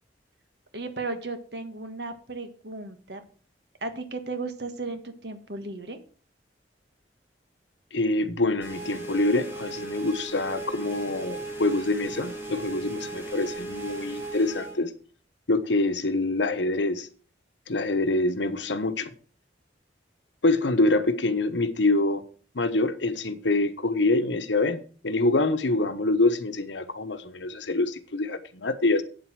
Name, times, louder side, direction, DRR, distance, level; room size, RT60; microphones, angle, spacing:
voice 1, 0.7-3.2 3.8-6.0, right 3 dB, 65° right, 1.6 m, -35 dB
voice 2, 7.9-14.9 15.5-17.1 17.7-19.1 20.4-22.2 22.5-24.8 25.0-29.0, left 2 dB, 80° left, 1.1 m, -25 dB
sound 1, 8.6-14.8, right 2 dB, 15° right, 3.0 m, -37 dB
8.9 x 7.8 x 6.2 m
head